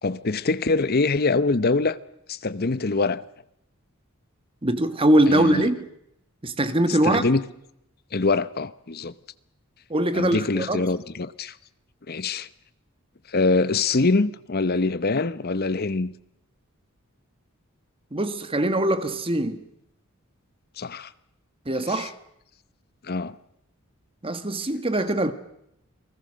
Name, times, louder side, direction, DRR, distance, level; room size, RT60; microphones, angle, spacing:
voice 1, 0.0-2.0 2.3-3.2 5.3-5.7 6.9-7.5 8.1-9.1 10.1-11.6 12.1-12.5 13.3-16.1 20.8-21.1 21.8-22.1 23.0-23.4, left 3 dB, 45° left, 0.9 m, -24 dB
voice 2, 4.6-5.8 6.4-7.2 9.9-10.8 18.1-19.7 21.6-22.1 24.2-25.3, right 1 dB, 25° right, 1.5 m, -22 dB
30.0 x 19.5 x 6.4 m
head